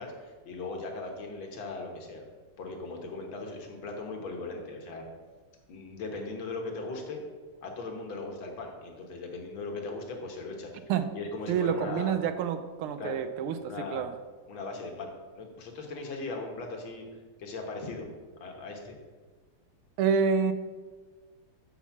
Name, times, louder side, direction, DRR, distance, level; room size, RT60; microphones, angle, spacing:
voice 1, 0.0-2.2 2.6-5.0 5.7-7.2 7.6-10.7 11.1-12.1 13.0-13.2 13.6-14.0 14.5-17.0 17.4-18.1 18.4-19.0, left 3 dB, 65° left, 2 dB, 2.0 m, -38 dB
voice 2, 11.5-14.1 20.0-20.5, right 6 dB, 80° right, 10 dB, 1.5 m, -28 dB
6.2 x 6.0 x 7.1 m, 1.3 s
omnidirectional pair, 2.4 m